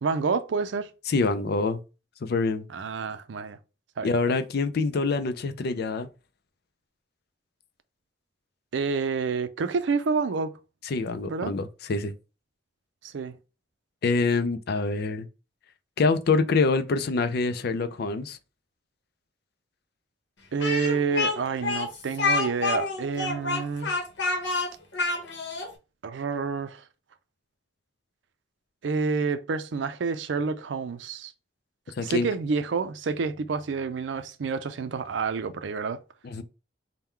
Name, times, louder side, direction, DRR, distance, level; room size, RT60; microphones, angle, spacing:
voice 1, 0.0-0.9 2.7-3.6 4.0-4.1 8.7-10.5 11.3-11.5 13.0-13.4 20.5-23.9 26.0-26.8 28.8-31.3 32.0-36.0, right 5 dB, 85° right, 0.4 m, -28 dB
voice 2, 1.1-1.8 2.2-2.6 4.0-6.1 10.8-12.1 14.0-15.3 16.0-18.4 32.0-32.3 36.2-36.4, left 3 dB, 60° left, 0.4 m, -25 dB
Speech, 20.6-25.7, left 3 dB, 75° left, 0.9 m, -28 dB
3.6 x 2.2 x 4.4 m
head